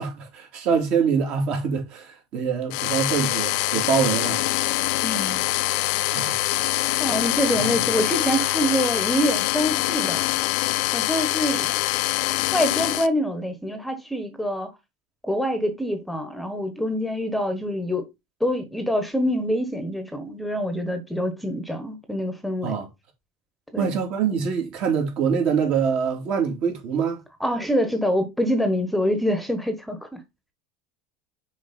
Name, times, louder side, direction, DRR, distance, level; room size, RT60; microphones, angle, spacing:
voice 1, 0.0-4.4 4.7-4.9 6.1-6.4 7.5-7.7 22.6-22.9 23.8-27.2, right 6 dB, 55° right, 2.8 m, -24 dB
sound 1, 2.7-13.1, left 17 dB, 70° left, 0.6 m, -24 dB
voice 2, 5.0-5.4 7.0-10.3 10.9-11.8 12.5-14.7 15.2-18.1 18.4-22.8 23.7-23.9 27.4-30.2, equal, ahead, 1.1 m, -25 dB
6.4 x 4.8 x 4.2 m
supercardioid pair, 120°, 3 cm